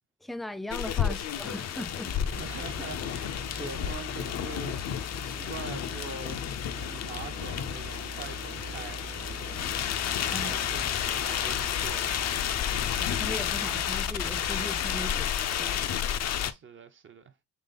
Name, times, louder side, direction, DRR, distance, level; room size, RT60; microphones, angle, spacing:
voice 1, 0.2-2.1 10.3-10.5 13.0-15.8, left 1 dB, ahead, 0.3 m, -38 dB
sound 1, 0.7-16.5, left 9 dB, 60° left, 0.5 m, -31 dB
sound 2, 2.0-15.1, left 2 dB, 90° left, 1.2 m, -42 dB
voice 2, 2.4-6.4 6.7-9.1 9.4-9.5 10.3-12.4 16.5-17.3, right 5 dB, 40° right, 0.6 m, -44 dB
sound 3, 6.8-11.8, right 4 dB, 70° right, 1.2 m, -49 dB
3.9 x 3.2 x 3.8 m
cardioid pair, 90°, 30 cm